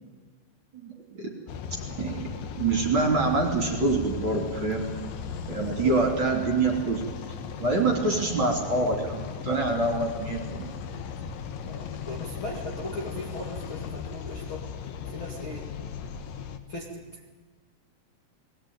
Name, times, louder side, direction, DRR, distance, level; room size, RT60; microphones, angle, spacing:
voice 1, 0.7-1.3 1.7-2.3 2.6-4.9 5.5-7.1 7.6-10.7, right 3 dB, 35° right, 1 dB, 2.8 m, -26 dB
sound 1, 1.5-16.6, left 6 dB, 65° left, 2.5 m, -37 dB
voice 2, 5.7-6.0 6.7-6.9 11.6-14.7 15.1-15.7 16.7-17.2, left 2 dB, 40° left, -2 dB, 2.0 m, -38 dB
21.0 x 18.0 x 9.3 m, 1.4 s
omnidirectional pair, 4.9 m